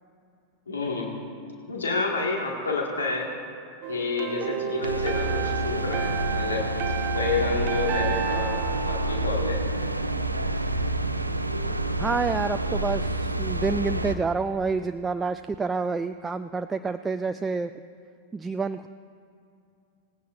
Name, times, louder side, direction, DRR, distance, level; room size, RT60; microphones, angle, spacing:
voice 1, 0.7-1.1 1.7-3.3 3.9-6.7 7.1-9.6, left 3 dB, 70° left, 0 dB, 1.8 m, -29 dB
sound 1, 3.8-9.8, right 8 dB, 45° right, 0.8 m, -32 dB
sound 2, 4.8-14.1, right 1 dB, 85° right, 0.6 m, -28 dB
voice 2, 12.0-17.7 18.3-18.9, right 4 dB, 15° right, 9 dB, 0.3 m, -28 dB
19.0 x 15.5 x 2.6 m, 2.5 s
figure-of-eight pair, 90°, 0 cm